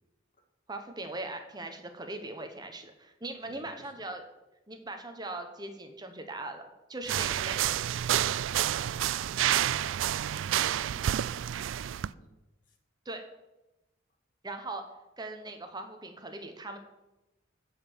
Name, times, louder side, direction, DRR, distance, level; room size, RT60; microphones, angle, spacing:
voice 1, 0.7-4.2 4.7-6.6 6.9-7.6 13.0-13.2 14.4-14.8 15.2-16.8, right 2 dB, 20° right, 6 dB, 1.1 m, -40 dB
voice 2, 3.4-3.9 10.7-12.3 12.7-12.8, equal, 45° left, 4 dB, 1.9 m, -56 dB
sound 1, 7.1-12.1, right 11 dB, 80° right, 0.3 m, -29 dB
15.5 x 5.7 x 7.0 m, 0.99 s
head